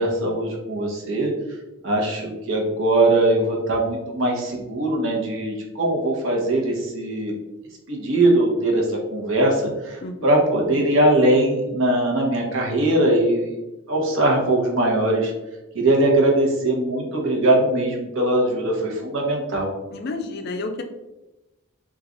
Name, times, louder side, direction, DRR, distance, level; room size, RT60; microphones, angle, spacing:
voice 1, 0.0-1.3 1.8-7.3 7.9-13.6 13.9-15.3 15.7-19.7, right 1 dB, 60° right, -1 dB, 0.9 m, -21 dB
voice 2, 19.9-20.8, left 3 dB, 45° left, 5 dB, 0.4 m, -30 dB
3.1 x 2.4 x 3.7 m, 1.0 s
head